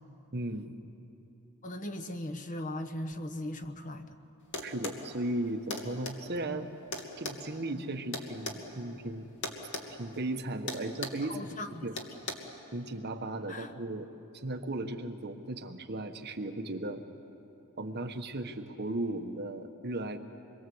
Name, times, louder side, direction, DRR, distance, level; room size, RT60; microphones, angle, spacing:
voice 1, 0.3-0.8 4.6-6.7 7.2-9.3 10.0-11.4 11.8-11.9 12.7-14.1 14.3-17.0 17.8-20.2, right 1 dB, 50° right, 5 dB, 1.3 m, -36 dB
voice 2, 1.6-4.2 11.3-11.9 13.5-13.7, left 1 dB, 35° left, 8 dB, 1.2 m, -38 dB
sound 1, 4.5-5.0 5.7-6.2 6.9-8.6 9.4-9.9 10.1-10.3 10.7-11.2 12.0-12.3, left 2 dB, 55° left, 2.3 m, -37 dB
27.0 x 22.5 x 7.9 m, 2.9 s
head